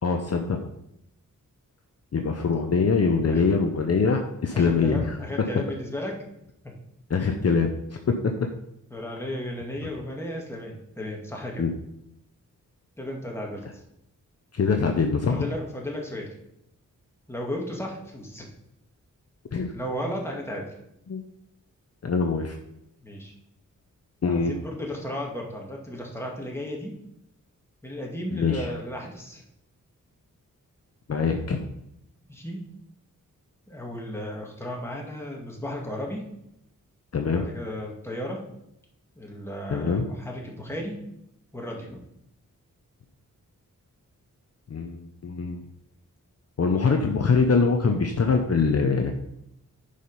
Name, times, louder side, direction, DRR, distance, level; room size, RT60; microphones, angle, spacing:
voice 1, 0.0-0.6 2.1-5.2 7.1-7.7 8.1-8.5 11.6-11.7 14.5-15.5 19.5-19.7 21.1-21.2 22.0-22.6 24.2-24.5 28.3-28.7 31.1-31.6 37.1-37.4 39.7-40.0 44.7-45.6 46.6-49.1, left 5 dB, 50° left, 4 dB, 0.8 m, -23 dB
voice 2, 4.5-6.1 8.9-11.6 13.0-13.7 15.3-16.3 17.3-18.5 19.7-20.6 23.0-23.3 24.3-26.9 27.8-29.4 32.3-32.6 33.7-36.3 37.3-38.4 39.2-41.0 41.5-42.0, equal, 10° left, -1 dB, 2.0 m, -34 dB
9.9 x 5.0 x 5.5 m, 0.79 s
wide cardioid pair, 140°, 32 cm